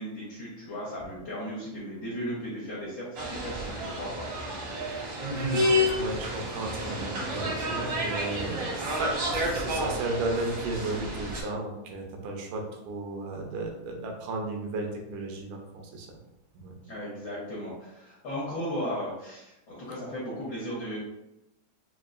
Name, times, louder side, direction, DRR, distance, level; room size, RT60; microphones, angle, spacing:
voice 1, 0.0-4.3 16.8-21.0, equal, 75° left, -7 dB, 1.0 m, -36 dB
sound 1, 3.2-11.4, left 1 dB, 70° right, 1.0 m, -30 dB
voice 2, 5.2-16.1 16.5-16.7, right 2 dB, 85° right, 1 dB, 2.2 m, -34 dB
5.5 x 2.3 x 2.4 m, 0.90 s
omnidirectional pair, 3.5 m